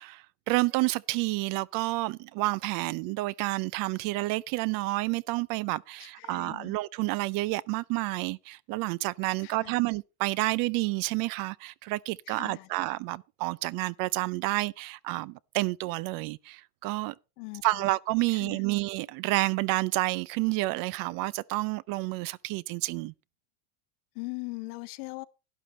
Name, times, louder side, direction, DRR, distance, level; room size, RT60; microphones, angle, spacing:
voice 1, 0.0-17.1 17.6-23.1, right 20 dB, 50° right, 0.5 m, -29 dB
voice 2, 6.0-6.7 9.4-9.8 12.3-12.7 17.4-17.8 18.3-18.6 24.1-25.3, left 28 dB, 80° left, 1.1 m, -40 dB
11.5 x 11.0 x 4.2 m
cardioid pair, 155°, 44 cm